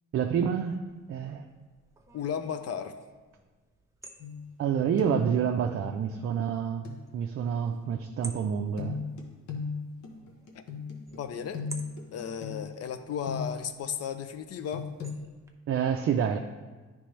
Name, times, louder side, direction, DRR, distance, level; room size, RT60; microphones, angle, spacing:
voice 1, 0.1-0.8 1.1-1.5 4.6-9.0 15.7-16.4, right 7 dB, 50° right, 5 dB, 0.4 m, -28 dB
sound 1, 0.9-15.5, right 2 dB, 10° right, 0.7 m, -53 dB
voice 2, 2.1-3.0 10.5-10.6 11.2-11.6 12.1-14.9, left 7 dB, 55° left, 9 dB, 0.6 m, -34 dB
sound 2, 4.2-4.7 5.0-5.4 6.8-7.0 8.8-13.8 14.7-15.2, left 5 dB, 80° left, 1.1 m, -37 dB
9.7 x 3.4 x 3.2 m, 1.3 s
cardioid pair, 90°, 30 cm